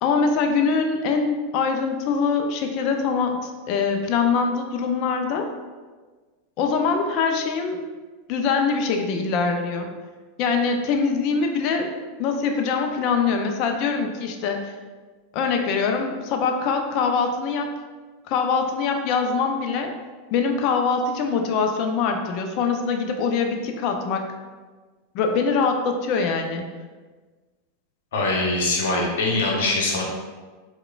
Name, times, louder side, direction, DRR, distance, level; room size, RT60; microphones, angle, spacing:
voice 1, 0.0-5.5 6.6-7.8 8.3-9.9 10.4-11.9 12.2-14.7 15.3-17.7 18.3-19.9 20.3-24.3 25.1-26.7, left 5 dB, 50° left, 4 dB, 0.4 m, -23 dB
voice 2, 28.1-30.0, left 2 dB, 70° left, -2 dB, 0.8 m, -22 dB
4.7 x 2.2 x 2.3 m, 1.4 s
hypercardioid pair, 90°, 0 cm